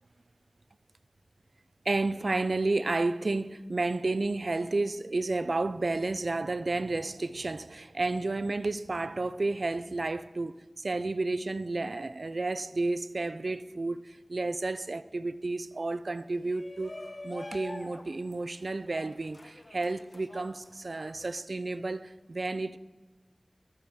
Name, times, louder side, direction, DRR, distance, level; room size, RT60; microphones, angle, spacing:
voice 1, 1.9-16.9 17.2-22.8, right 2 dB, 65° right, 0.3 m, -31 dB
Shout, 16.3-21.4, left 2 dB, 40° left, 0.5 m, -46 dB
13.5 x 4.6 x 6.3 m
wide cardioid pair, 65°, 0 cm